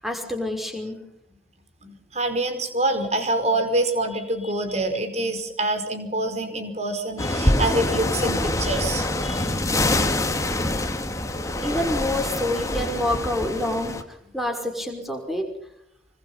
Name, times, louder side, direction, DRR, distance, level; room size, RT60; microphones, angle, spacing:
voice 1, 0.0-1.0 7.2-7.3 9.2-9.5 11.6-13.9 14.3-15.4, left 1 dB, ahead, 3 dB, 5.5 m, -27 dB
voice 2, 1.8-9.1 11.5-11.6, right 2 dB, 35° right, 7 dB, 4.9 m, -26 dB
sound 1, 7.2-14.0, left 1 dB, 15° left, 2.3 m, -25 dB
26.5 x 25.0 x 5.7 m, 0.74 s
head